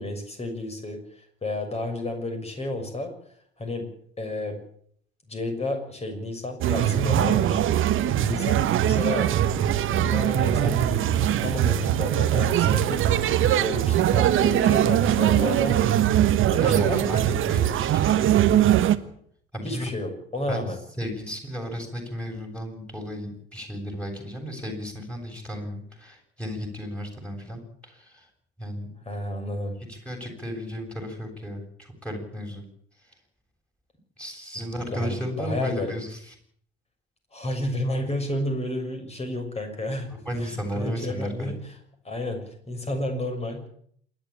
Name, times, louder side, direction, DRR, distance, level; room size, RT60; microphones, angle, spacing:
voice 1, 0.0-3.1 3.6-3.9 4.2-4.6 5.3-9.3 9.9-15.9 16.2-17.1 19.6-20.8 29.0-29.8 34.9-35.9 37.3-41.7 42.0-43.7, left 1 dB, 20° left, 5 dB, 6.5 m, -31 dB
sound 1, 6.6-19.0, right 11 dB, 40° right, 1.4 m, -21 dB
voice 2, 16.6-18.5 19.5-19.9 20.5-20.6 21.0-28.3 28.6-28.9 29.9-32.6 34.2-36.3 40.1-41.5, equal, 5° left, 3 dB, 7.7 m, -34 dB
27.5 x 11.5 x 8.8 m, 0.65 s
figure-of-eight pair, 70°, 32 cm